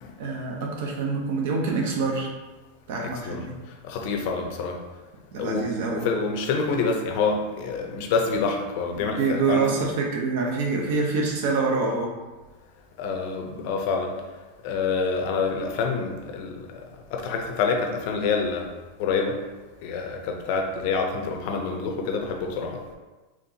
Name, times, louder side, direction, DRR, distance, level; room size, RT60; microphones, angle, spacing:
voice 1, 0.2-2.3 2.9-3.5 5.3-6.1 9.1-12.1, right 4 dB, 60° right, 0 dB, 0.8 m, -26 dB
voice 2, 3.8-4.8 5.4-9.7 13.0-14.1 14.6-16.8 17.1-18.7 19.0-19.4 19.8-22.8, left 4 dB, 45° left, 2 dB, 0.6 m, -27 dB
4.2 x 3.0 x 2.8 m, 1.2 s
supercardioid pair, 170°, 0 cm